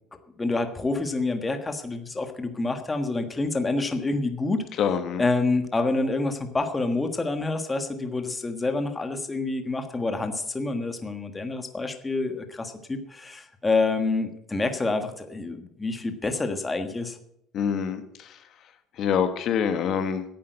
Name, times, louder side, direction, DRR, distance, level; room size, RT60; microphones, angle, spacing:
voice 1, 0.4-4.6 5.2-17.2, left 3 dB, 15° left, 7 dB, 1.4 m, -27 dB
voice 2, 4.8-5.2 17.5-18.4 19.0-20.2, left 7 dB, 50° left, 9 dB, 1.3 m, -26 dB
11.5 x 8.6 x 8.0 m, 0.74 s
cardioid pair, 120°, 0 cm